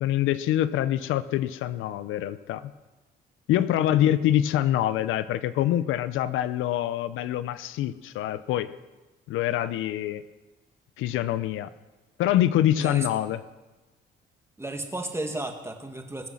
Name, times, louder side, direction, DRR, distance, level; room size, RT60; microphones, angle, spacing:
voice 1, 0.0-2.6 3.5-8.7 9.3-10.2 11.0-11.7 12.2-13.4, left 12 dB, 90° left, 14 dB, 0.6 m, -25 dB
voice 2, 14.6-16.3, right 2 dB, 15° right, 4 dB, 2.1 m, -33 dB
21.0 x 7.2 x 6.4 m, 1.2 s
cardioid pair, 90°, 20 cm